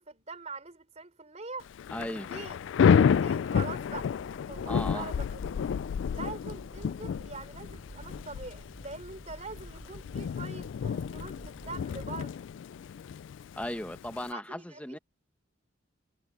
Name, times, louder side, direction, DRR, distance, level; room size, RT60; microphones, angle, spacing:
voice 1, 0.0-1.7 2.3-2.6 3.0-4.1 4.5-5.4 6.1-12.4 14.3-14.8, right 3 dB, 35° right, 3.7 m, -43 dB
Thunder / Rain, 1.7-14.3, left 7 dB, 65° left, 0.3 m, -30 dB
voice 2, 1.9-2.3 4.7-5.1 13.6-15.0, left 1 dB, 5° left, 1.1 m, -36 dB
sound 1, 3.7-12.2, equal, 15° right, 5.6 m, -50 dB
head